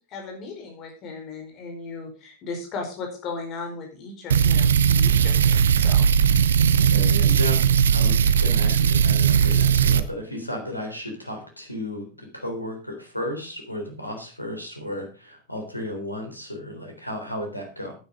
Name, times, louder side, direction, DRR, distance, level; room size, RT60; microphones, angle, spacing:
voice 1, 0.1-6.1, left 4 dB, 35° left, 2 dB, 4.6 m, -36 dB
sound 1, 4.3-10.0, right 7 dB, 65° right, 0.8 m, -18 dB
voice 2, 6.8-17.9, left 1 dB, 90° left, 4 dB, 3.6 m, -34 dB
10.5 x 9.7 x 5.1 m, 0.34 s
figure-of-eight pair, 90°, 0 cm